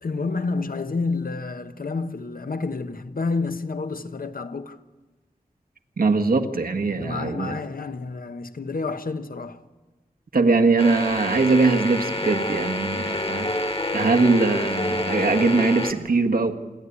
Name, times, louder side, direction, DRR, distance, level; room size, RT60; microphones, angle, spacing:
voice 1, 0.0-4.8 6.9-9.6, left 3 dB, 70° left, 1.1 m, -29 dB
voice 2, 6.0-7.6 10.3-13.5 13.9-16.6, right 3 dB, 80° right, 1.5 m, -21 dB
sound 1, 10.8-15.9, left 1 dB, 40° left, 1.8 m, -27 dB
27.0 x 11.5 x 9.7 m
wide cardioid pair, 55°, 15 cm